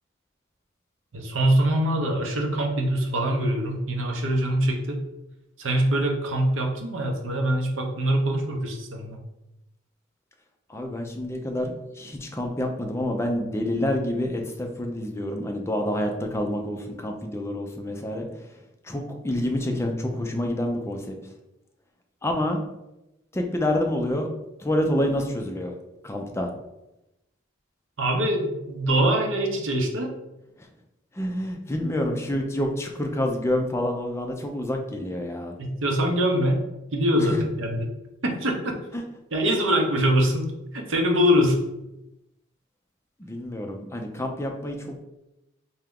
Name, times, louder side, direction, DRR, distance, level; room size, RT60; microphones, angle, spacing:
voice 1, 1.1-5.0 5.6-9.2 28.0-30.1 35.6-36.7 36.9-37.9 38.2-38.7 39.3-40.5 40.7-41.6, equal, 75° right, 2 dB, 0.7 m, -23 dB
voice 2, 10.7-18.2 18.9-21.1 22.2-22.6 23.3-24.3 24.6-25.7 26.0-26.5 31.2-35.6 38.9-39.0 43.3-45.0, left 1 dB, 15° left, 3 dB, 0.4 m, -28 dB
3.4 x 2.8 x 3.6 m, 0.92 s
head